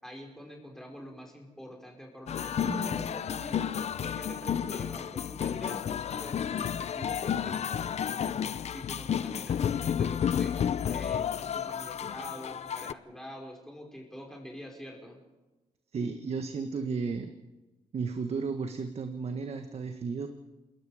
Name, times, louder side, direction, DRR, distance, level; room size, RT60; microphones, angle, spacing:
voice 1, 0.0-3.7 4.0-8.4 8.7-10.6 10.9-15.2, equal, 5° left, 0 dB, 5.4 m, -45 dB
sound 1, 2.3-12.9, left 8 dB, 55° left, 0.7 m, -31 dB
sound 2, 2.6-5.0, right 3 dB, 25° right, 1.3 m, -45 dB
voice 2, 15.9-17.3 17.9-20.3, right 5 dB, 50° right, 6 dB, 1.6 m, -33 dB
28.0 x 21.5 x 5.1 m, 1.1 s
cardioid pair, 90°, 13 cm